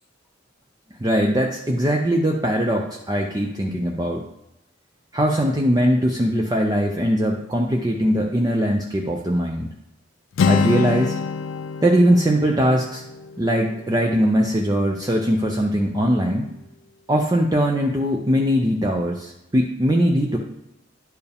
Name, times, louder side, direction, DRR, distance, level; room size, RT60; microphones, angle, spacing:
voice 1, 1.0-4.2 5.1-9.7 10.5-11.2 11.8-13.0 13.4-16.5 17.1-20.4, equal, 20° right, 1 dB, 0.5 m, -21 dB
Acoustic guitar, 10.4-14.3, left 5 dB, 75° left, 0.4 m, -26 dB
10.5 x 4.7 x 3.4 m, 0.88 s
head